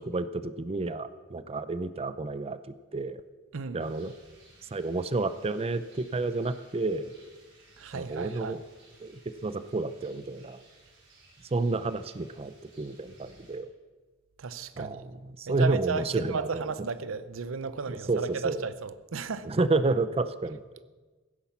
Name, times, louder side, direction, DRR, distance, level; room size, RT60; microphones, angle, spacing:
voice 1, 0.0-2.6 2.9-3.2 3.7-4.1 4.7-7.1 7.9-8.6 9.0-10.6 11.5-13.7 14.8-16.7 17.9-18.6 19.4-20.8, right 3 dB, 30° right, 0.5 m, -30 dB
Rain, 3.8-13.6, right 2 dB, 65° right, 5.2 m, -59 dB
voice 2, 7.8-8.6 14.4-15.0 15.5-19.5, right 5 dB, 80° right, 0.6 m, -34 dB
16.5 x 10.0 x 7.2 m
head